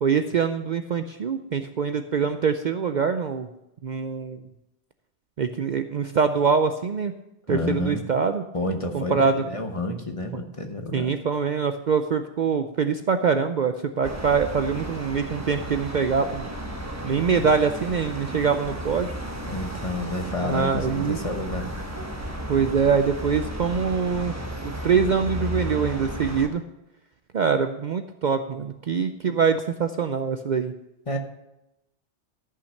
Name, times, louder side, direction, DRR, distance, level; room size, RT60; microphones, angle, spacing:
voice 1, 0.0-3.5 3.8-4.4 5.4-7.1 7.5-8.4 8.9-9.4 10.9-16.5 17.0-19.1 20.4-21.2 22.5-24.4 24.6-26.6 27.3-30.7, right 6 dB, 55° right, 8 dB, 0.6 m, -24 dB
voice 2, 7.5-8.1 8.5-11.1 17.3-17.5 19.5-21.7 31.1-31.2, left 1 dB, 30° left, 5 dB, 1.1 m, -30 dB
sound 1, 14.0-26.5, equal, 15° right, 1.2 m, -34 dB
13.5 x 5.8 x 6.4 m, 0.88 s
omnidirectional pair, 1.1 m